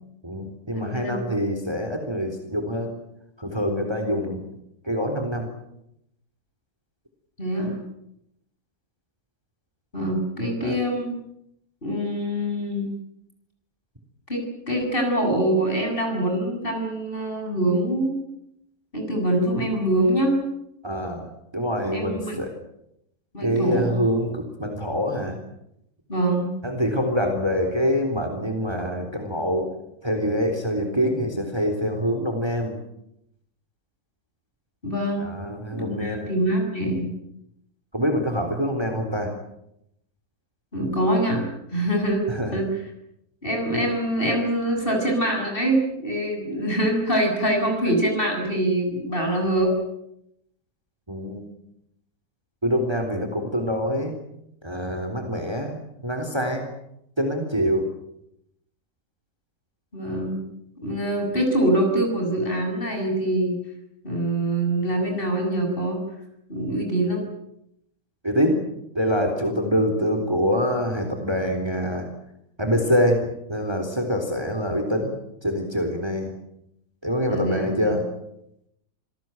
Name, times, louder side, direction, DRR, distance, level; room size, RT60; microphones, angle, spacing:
voice 1, 0.2-2.9 3.4-4.4 4.8-5.5 10.6-10.8 20.8-21.3 21.5-22.5 23.4-25.4 26.6-29.7 30.0-32.8 35.2-36.3 37.9-39.3 42.3-42.6 51.1-51.5 52.6-54.1 54.6-56.6 57.2-57.9 68.2-68.6 68.9-72.1 72.6-75.1 75.4-76.3 77.0-78.0, equal, 15° right, 5 dB, 3.7 m, -25 dB
voice 2, 0.7-1.2 7.4-7.8 9.9-11.1 11.8-12.9 14.3-18.2 18.9-20.4 21.9-22.4 23.3-23.9 26.1-26.5 34.8-35.3 35.7-37.1 40.7-42.7 43.4-49.7 59.9-60.4 60.8-63.6 64.0-66.0 66.5-67.2 77.3-77.9, right 1 dB, 35° left, 2 dB, 8.4 m, -24 dB
27.0 x 19.0 x 9.1 m, 0.80 s
omnidirectional pair, 1.6 m